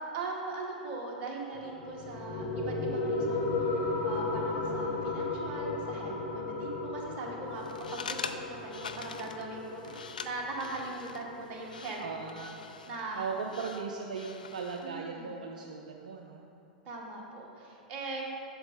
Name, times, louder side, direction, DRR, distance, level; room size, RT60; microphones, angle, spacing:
voice 1, 0.1-12.0 12.3-12.5 12.9-13.3 14.8-15.3 16.8-18.2, right 3 dB, 35° right, -1 dB, 1.4 m, -40 dB
sound 1, 1.5-12.5, left 2 dB, 45° left, 1.1 m, -35 dB
sound 2, 7.6-14.9, left 5 dB, 70° left, 0.4 m, -44 dB
voice 2, 12.0-12.6 13.1-16.4, right 5 dB, 65° right, 1 dB, 0.5 m, -38 dB
7.8 x 6.9 x 4.0 m, 2.7 s
figure-of-eight pair, 95°, 5 cm